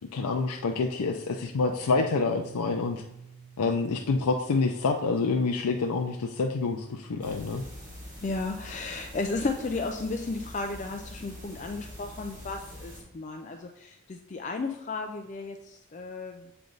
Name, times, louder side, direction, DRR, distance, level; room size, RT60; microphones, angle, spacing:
voice 1, 0.1-3.0 3.6-7.6, left 4 dB, 90° left, 2 dB, 0.5 m, -27 dB
Guitar, 1.8-4.4, right 6 dB, 75° right, 0.6 m, -49 dB
sound 1, 7.2-13.0, left 1 dB, 35° right, 1.8 m, -45 dB
voice 2, 8.2-16.5, left 3 dB, 35° left, 3 dB, 0.3 m, -34 dB
7.9 x 3.4 x 3.9 m, 0.79 s
head